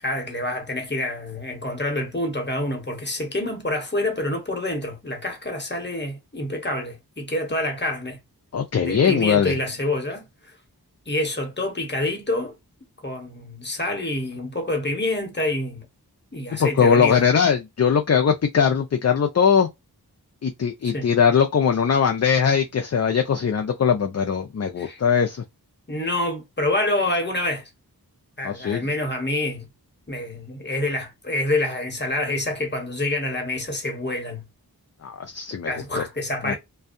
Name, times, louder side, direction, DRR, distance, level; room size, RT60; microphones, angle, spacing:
voice 1, 0.0-8.2 8.8-10.3 11.1-12.5 13.0-15.9 16.3-17.3 20.9-21.1 24.8-25.0 25.9-27.6 28.4-29.7 30.1-34.4 35.6-36.6, left 1 dB, 30° left, 1.1 m, -27 dB
voice 2, 8.5-9.5 16.6-19.7 20.4-25.4 28.4-28.9 35.0-36.0 36.4-36.5, left 7 dB, 45° left, 0.4 m, -20 dB
2.6 x 2.2 x 2.5 m
wide cardioid pair, 50°, 38 cm